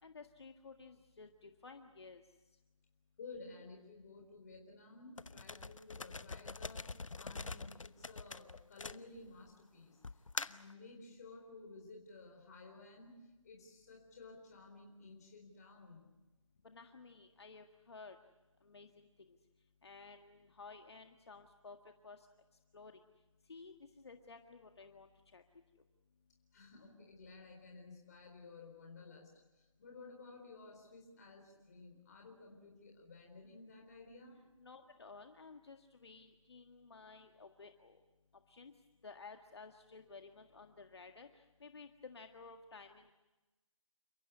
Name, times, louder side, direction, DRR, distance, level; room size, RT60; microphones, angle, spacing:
voice 1, 0.0-2.2 16.6-18.2 18.6-19.1 19.8-21.8 22.0-22.3 22.7-23.0 23.5-25.4 34.6-38.0 38.5-38.7 39.0-43.1, left 4 dB, 50° left, 5 dB, 1.7 m, -54 dB
voice 2, 3.2-10.0 10.4-13.1 13.4-16.1 26.5-34.4, left 3 dB, 30° left, 1 dB, 4.3 m, -54 dB
sound 1, 5.2-9.5 10.0-10.7, left 4 dB, 70° left, 1.0 m, -44 dB
29.5 x 15.5 x 9.6 m, 1.1 s
figure-of-eight pair, 165°, 17 cm